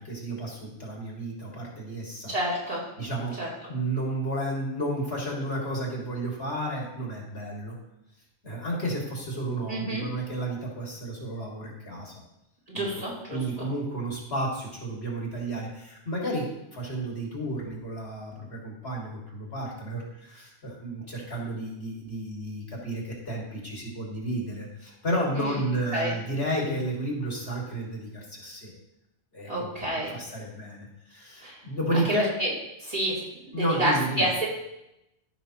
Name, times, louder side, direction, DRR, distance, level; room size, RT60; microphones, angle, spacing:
voice 1, 0.0-2.3 3.0-3.4 3.7-7.8 8.4-12.1 12.7-28.7 29.3-32.4 33.5-34.3, right 1 dB, 55° left, -2 dB, 2.3 m, -32 dB
voice 2, 2.3-2.8 3.4-3.5 9.7-10.0 12.7-13.4 25.3-25.5 25.9-26.1 29.5-30.1 31.4-31.6 31.9-32.0 32.4-32.5 32.9-33.2 33.5-34.5, right 1 dB, 30° right, -8 dB, 3.1 m, -28 dB
14.5 x 5.9 x 2.9 m, 0.87 s
omnidirectional pair, 1.2 m